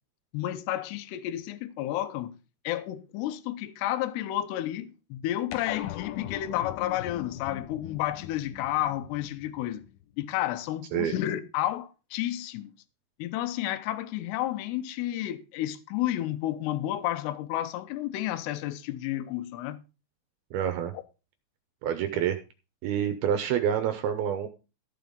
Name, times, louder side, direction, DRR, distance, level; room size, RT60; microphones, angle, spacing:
voice 1, 0.3-2.4 2.6-9.8 10.2-12.7 13.2-19.8, left 13 dB, 75° left, 2.7 m, -31 dB
sound 1, 5.5-10.2, left 13 dB, 90° left, 2.2 m, -40 dB
voice 2, 20.5-20.9 21.8-22.4 22.8-24.5, right 9 dB, 80° right, 2.2 m, -27 dB
14.5 x 5.6 x 5.2 m
omnidirectional pair, 5.5 m